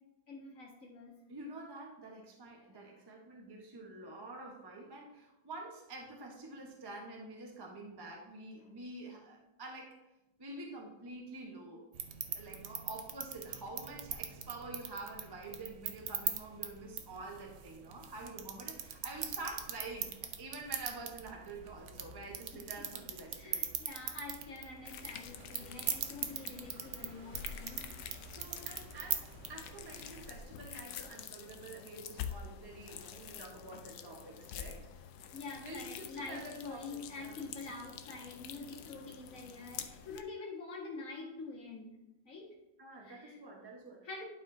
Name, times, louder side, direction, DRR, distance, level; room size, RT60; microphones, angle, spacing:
voice 1, 0.3-1.1 2.7-2.9 22.5-22.6 23.4-27.9 35.3-42.0 42.3-42.5 43.0-43.4 44.0-44.2, left 3 dB, 45° left, -3 dB, 2.1 m, -46 dB
voice 2, 1.3-9.9 10.4-11.8 12.3-23.6 26.2-26.3 28.2-34.9 35.6-37.4 42.8-44.1, right 2 dB, 15° right, -1 dB, 0.8 m, -47 dB
sound 1, 11.9-30.4, right 8 dB, 90° right, 0.6 m, -42 dB
sound 2, 24.9-40.2, left 8 dB, 70° left, 1.0 m, -48 dB
11.5 x 4.8 x 2.7 m, 0.96 s
omnidirectional pair, 2.0 m